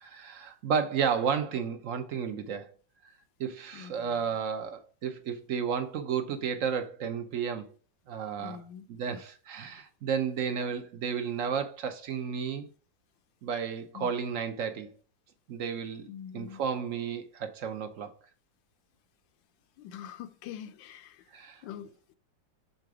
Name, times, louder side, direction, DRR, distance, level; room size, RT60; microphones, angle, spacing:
voice 1, 0.0-2.7 3.4-7.7 8.1-8.6 8.9-12.7 13.4-14.9 15.5-18.1 21.3-21.6, right 7 dB, 60° right, 0.9 m, -32 dB
voice 2, 3.7-4.4 8.4-8.9 13.9-14.1 16.1-16.6 19.8-21.2 21.6-22.2, left 9 dB, 80° left, 1.3 m, -44 dB
6.8 x 3.9 x 4.8 m
omnidirectional pair, 2.0 m